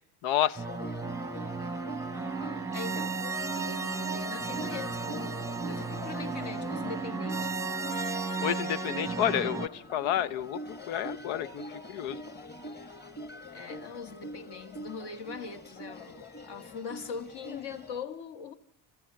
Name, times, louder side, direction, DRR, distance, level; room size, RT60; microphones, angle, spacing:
voice 1, 0.2-0.6 8.4-10.6 10.9-11.6 11.9-12.2, left 11 dB, 80° left, 0.8 m, -29 dB
sound 1, 0.5-18.0, left 1 dB, 20° left, 1.9 m, -45 dB
sound 2, 0.6-9.7, right 4 dB, 5° right, 0.9 m, -34 dB
voice 2, 2.7-3.2 3.5-7.7 13.5-18.5, left 5 dB, 55° left, 2.2 m, -41 dB
29.0 x 14.5 x 7.7 m
cardioid pair, 105°, 47 cm